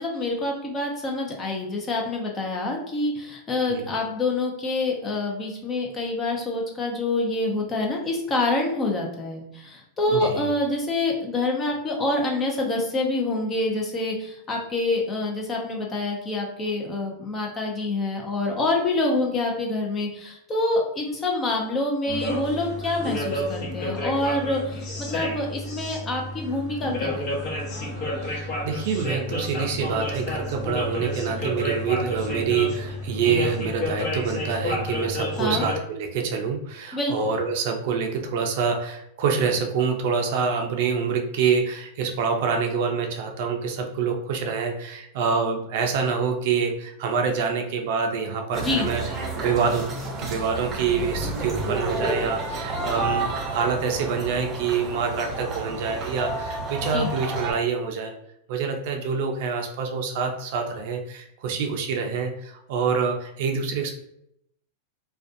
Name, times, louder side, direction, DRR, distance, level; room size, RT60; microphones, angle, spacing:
voice 1, 0.0-27.3 35.4-35.7 36.9-37.1 48.6-48.9 56.9-57.1, left 2 dB, 25° left, 0 dB, 0.6 m, -26 dB
voice 2, 10.1-10.5 28.2-49.0 49.3-49.8 50.2-58.1 58.5-63.9, right 5 dB, 65° right, 3 dB, 0.5 m, -26 dB
sound 1, 22.1-35.8, left 1 dB, 50° left, 1.1 m, -30 dB
sound 2, 48.5-57.5, right 2 dB, 25° right, 0.7 m, -30 dB
2.5 x 2.3 x 2.5 m, 0.75 s
hypercardioid pair, 125°, 0 cm